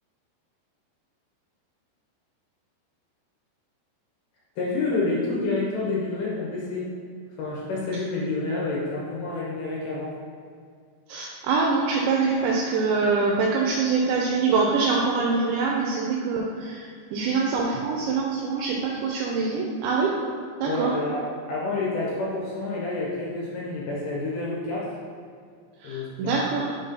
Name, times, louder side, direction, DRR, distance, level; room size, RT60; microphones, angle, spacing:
voice 1, 4.6-6.9 7.4-10.1 20.7-24.9 25.8-26.6, left 3 dB, 70° left, -5 dB, 2.6 m, -29 dB
voice 2, 11.1-20.1 20.6-20.9 25.8-26.7, right 4 dB, 85° right, -2 dB, 2.8 m, -24 dB
6.2 x 4.2 x 5.2 m, 2.1 s
omnidirectional pair, 5.2 m